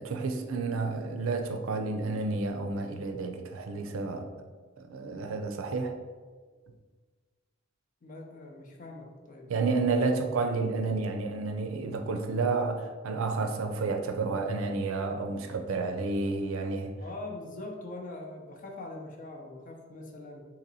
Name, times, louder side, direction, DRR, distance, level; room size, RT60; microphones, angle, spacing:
voice 1, 0.0-4.3 4.8-6.0 9.5-16.9, right 3 dB, 90° right, 5 dB, 0.4 m, -30 dB
voice 2, 8.0-9.9 17.0-20.4, left 2 dB, 40° left, 1 dB, 0.5 m, -43 dB
2.9 x 2.8 x 4.0 m, 1.5 s
head